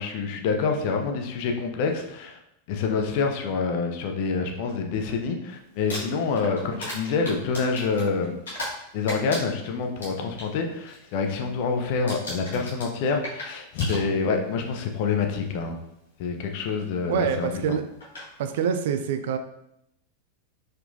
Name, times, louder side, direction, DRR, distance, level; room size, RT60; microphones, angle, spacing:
voice 1, 0.0-2.4 2.7-8.4 8.9-15.8 16.2-17.8, left 4 dB, 45° left, 4 dB, 0.6 m, -27 dB
Crumpling crinkling, 5.7-8.8 9.1-10.5 10.8-11.2 11.4-11.8 12.1-14.5 15.4-15.5 17.5-17.6 18.0-18.3, left 1 dB, 65° left, 1.6 m, -36 dB
voice 2, 17.1-17.8 18.4-19.4, right 7 dB, 55° right, 8 dB, 0.4 m, -25 dB
4.4 x 3.8 x 2.6 m, 0.79 s
figure-of-eight pair, 90°, 0 cm